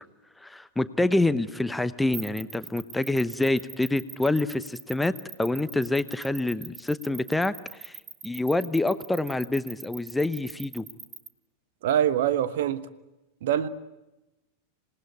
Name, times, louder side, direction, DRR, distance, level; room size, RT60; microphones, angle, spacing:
voice 1, 0.4-5.1 5.4-8.0 8.2-10.8, left 2 dB, 5° left, 0.8 m, -26 dB
sound 1, 2.1-11.3, right 9 dB, 30° right, 1.1 m, -41 dB
voice 2, 11.8-12.9 13.4-13.7, right 10 dB, 55° right, 1.1 m, -24 dB
26.5 x 18.5 x 9.7 m
figure-of-eight pair, 90°, 0 cm